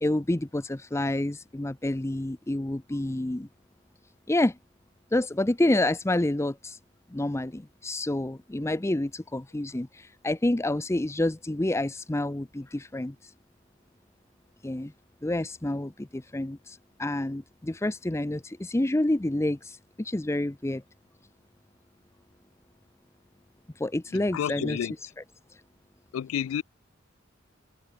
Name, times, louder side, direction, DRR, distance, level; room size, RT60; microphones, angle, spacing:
voice 1, 0.0-3.5 4.3-4.6 5.1-6.8 7.1-13.3 14.6-14.9 15.2-20.8 23.8-24.9, left 1 dB, 15° left, 0.6 m, -28 dB
voice 2, 24.3-24.9 26.1-26.6, left 9 dB, 85° left, 0.3 m, -29 dB
head